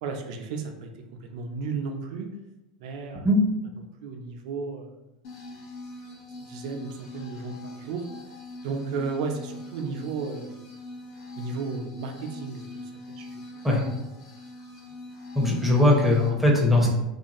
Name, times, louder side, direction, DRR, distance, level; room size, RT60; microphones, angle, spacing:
voice 1, 0.0-0.9 1.2-2.3 2.8-3.3 4.0-4.9 6.4-8.1 8.6-10.6 11.4-13.4, right 4 dB, 65° right, 4 dB, 0.4 m, -34 dB
sound 1, 5.2-16.3, left 2 dB, 65° left, 0.9 m, -42 dB
voice 2, 15.4-16.9, left 1 dB, 5° right, -2 dB, 0.7 m, -20 dB
2.5 x 2.2 x 3.0 m, 0.95 s
hypercardioid pair, 95°, 4 cm